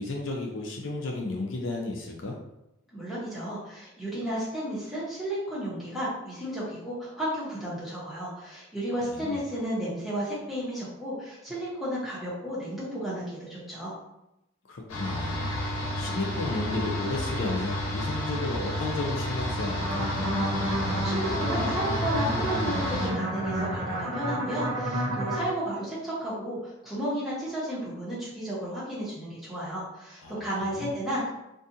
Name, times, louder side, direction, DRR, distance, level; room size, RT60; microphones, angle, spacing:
voice 1, 0.0-2.4 9.1-9.4 14.7-15.5 16.0-20.1 30.2-30.4 30.7-30.9, left 2 dB, 65° left, 0 dB, 0.4 m, -33 dB
voice 2, 2.9-13.9 20.6-31.4, equal, ahead, -10 dB, 0.9 m, -33 dB
sound 1, 14.9-23.1, left 1 dB, 85° left, 0.7 m, -31 dB
sound 2, 19.8-25.4, right 1 dB, 85° right, 0.9 m, -30 dB
2.6 x 2.4 x 2.6 m, 0.90 s
head